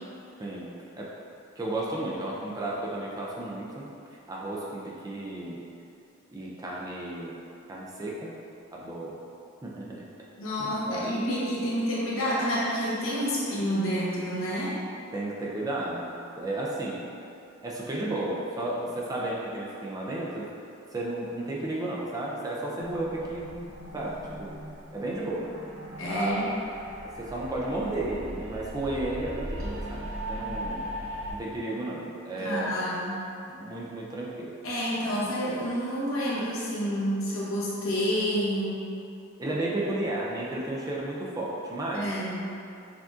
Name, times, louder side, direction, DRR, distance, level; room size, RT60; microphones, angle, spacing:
voice 1, 1.6-3.9 4.3-5.6 6.3-7.4 7.7-8.3 8.7-9.2 9.6-10.1 10.6-11.0 15.1-17.0 17.6-20.5 20.9-24.6 24.9-25.5 26.1-26.5 27.2-30.8 31.3-32.8 33.5-34.5 35.2-35.3 39.4-42.1, right 2 dB, 15° right, -4 dB, 0.4 m, -33 dB
voice 2, 10.4-14.8 26.0-26.5 32.4-33.2 34.6-38.9 41.9-42.5, equal, 65° left, -8 dB, 1.0 m, -29 dB
sound 1, 22.8-31.3, equal, 65° right, 0.6 m, -39 dB
5.9 x 2.5 x 2.4 m, 2.6 s
head